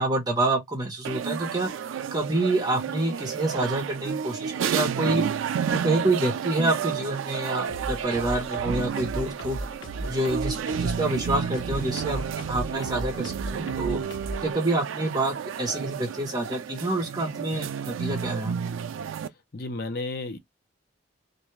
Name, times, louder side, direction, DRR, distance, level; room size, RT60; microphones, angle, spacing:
voice 1, 0.0-1.7 2.1-5.2 5.7-9.6 10.0-14.0 14.4-18.6, right 2 dB, 20° right, 0.9 m, -27 dB
sound 1, 1.0-19.3, right 7 dB, 90° right, 0.3 m, -31 dB
sound 2, 7.7-14.5, right 1 dB, 80° left, 1.1 m, -35 dB
voice 2, 19.5-20.4, left 2 dB, 50° left, 0.7 m, -32 dB
2.6 x 2.4 x 3.0 m
head